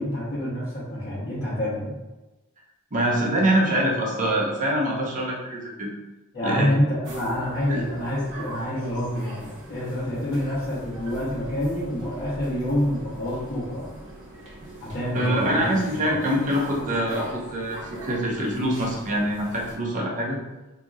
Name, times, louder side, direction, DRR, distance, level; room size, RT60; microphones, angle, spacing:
voice 1, 0.0-1.9 6.3-13.9 14.8-16.2, left 1 dB, 50° left, -13 dB, 1.2 m, -27 dB
voice 2, 2.9-5.9 6.4-6.7 7.7-7.8 15.1-20.4, right 1 dB, 35° right, -3 dB, 0.7 m, -24 dB
sound 1, 7.0-19.8, right 1 dB, 60° right, 0.9 m, -41 dB
2.9 x 2.8 x 2.4 m, 1.1 s
head